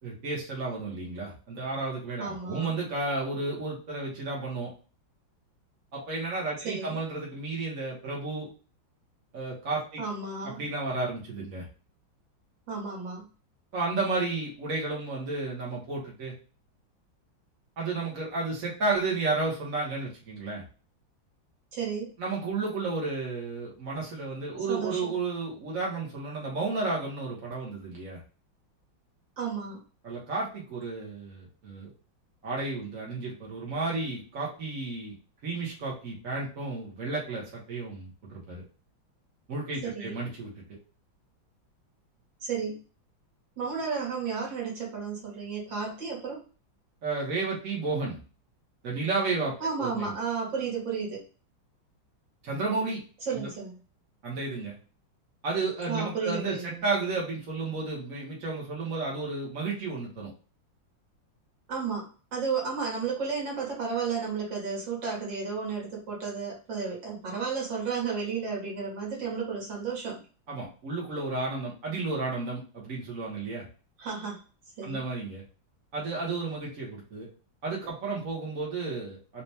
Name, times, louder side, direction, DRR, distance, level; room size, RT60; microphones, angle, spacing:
voice 1, 0.0-4.7 5.9-8.5 9.3-10.0 10.4-11.7 13.7-16.3 17.8-20.6 22.2-28.2 30.0-31.9 32.4-35.2 35.4-38.6 39.5-40.6 47.0-48.2 48.8-50.1 52.4-53.0 53.3-53.5 54.2-54.7 55.4-60.3 70.5-73.7 74.8-75.4 75.9-77.3 77.6-79.4, right 3 dB, 45° right, -4 dB, 1.5 m, -32 dB
voice 2, 2.2-2.7 6.6-7.0 10.0-10.6 12.7-13.2 21.7-22.1 24.7-25.1 29.4-29.8 39.8-40.1 42.4-42.8 43.6-46.4 49.6-51.2 53.2-53.8 55.9-56.8 61.7-70.2 74.0-74.4 74.8-75.0, right 5 dB, 65° right, -5 dB, 2.4 m, -33 dB
4.3 x 2.6 x 3.3 m, 0.36 s
omnidirectional pair, 2.2 m